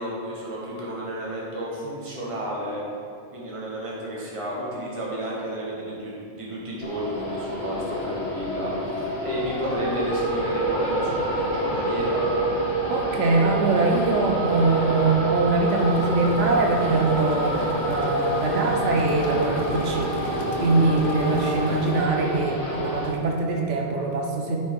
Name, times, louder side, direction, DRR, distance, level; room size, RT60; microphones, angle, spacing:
voice 1, 0.0-2.8 3.3-8.7 9.2-12.3, equal, 25° right, -5 dB, 1.5 m, -32 dB
sound 1, 6.8-23.1, right 1 dB, 35° left, 1.5 m, -27 dB
voice 2, 12.9-24.6, right 3 dB, 85° right, 0 dB, 1.2 m, -23 dB
sound 2, 15.7-22.1, left 4 dB, 55° left, 0.7 m, -38 dB
10.5 x 4.7 x 4.6 m, 2.4 s
omnidirectional pair, 1.2 m